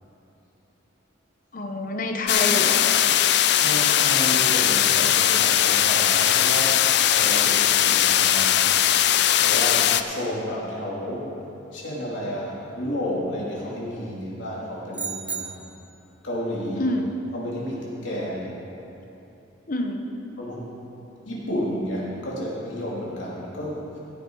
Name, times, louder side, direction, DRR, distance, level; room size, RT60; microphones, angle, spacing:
voice 1, 1.5-3.0 16.8-17.1 19.7-20.0, left 2 dB, 45° left, 4 dB, 0.9 m, -27 dB
sound 1, 2.3-10.0, left 11 dB, 60° left, 0.4 m, -19 dB
voice 2, 3.6-8.5 9.4-11.3 11.7-15.6 16.2-16.9 17.3-18.5 20.4-20.7 21.2-24.0, equal, 80° left, -5 dB, 2.8 m, -31 dB
sound 2, 14.9-16.0, right 5 dB, 10° right, 0.5 m, -34 dB
16.5 x 7.8 x 4.7 m, 2.9 s
head